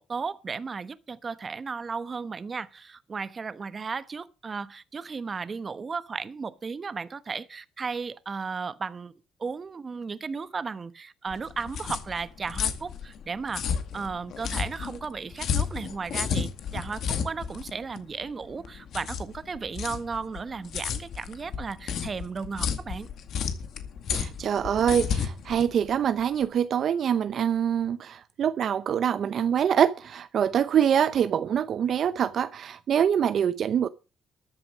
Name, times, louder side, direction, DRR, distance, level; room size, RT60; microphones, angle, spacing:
voice 1, 0.0-9.1 9.4-23.1, right 5 dB, 35° right, 1.1 m, -35 dB
sound 1, 11.3-26.5, left 7 dB, 70° left, 2.0 m, -32 dB
voice 2, 24.1-33.9, right 8 dB, 60° right, 0.7 m, -25 dB
13.5 x 8.7 x 6.3 m
cardioid pair, 90°, 0 cm